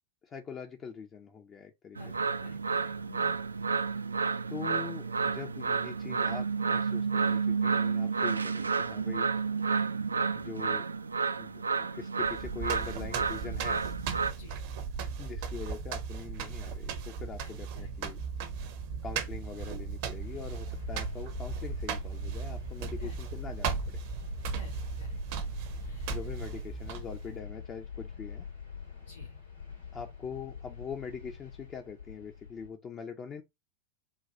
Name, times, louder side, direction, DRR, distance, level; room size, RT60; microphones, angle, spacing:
voice 1, 0.2-2.0 4.5-9.3 10.3-10.9 11.4-13.9 15.2-18.2 19.0-24.0 26.1-28.5 29.9-33.4, left 6 dB, 25° left, 0.6 m, -43 dB
voice 2, 2.0-3.3 14.3-14.6 17.4-17.9 23.0-23.2 24.5-25.5 25.8-26.2 29.1-29.4, left 2 dB, 55° left, 1.2 m, -53 dB
sound 1, 2.0-14.3, right 5 dB, 75° right, 0.3 m, -31 dB
sound 2, 12.2-27.3, right 6 dB, 45° right, 0.7 m, -37 dB
sound 3, 20.2-32.7, left 6 dB, 75° left, 2.4 m, -44 dB
4.0 x 2.3 x 4.3 m
figure-of-eight pair, 90°, 0 cm